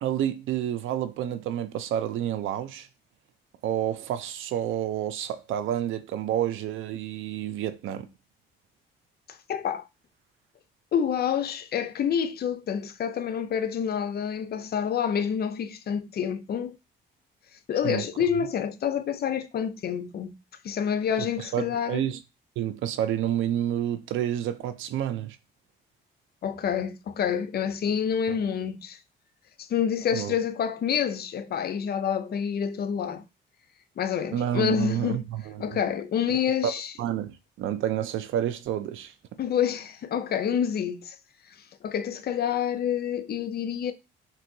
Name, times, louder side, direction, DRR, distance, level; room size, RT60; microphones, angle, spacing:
voice 1, 0.0-2.9 3.6-8.1 17.8-18.0 21.2-21.3 21.5-22.2 22.6-25.4 28.3-28.4 30.1-30.4 34.3-35.8 36.6-36.7 37.0-39.1, right 11 dB, 80° right, 0.5 m, -29 dB
voice 2, 9.3-9.8 10.9-16.8 17.7-20.3 20.6-22.0 26.4-29.0 29.6-33.2 34.0-35.2 35.6-36.9 39.4-41.2 41.8-43.9, left 8 dB, 50° left, 0.5 m, -28 dB
6.0 x 2.7 x 2.7 m
cardioid pair, 90°, 20 cm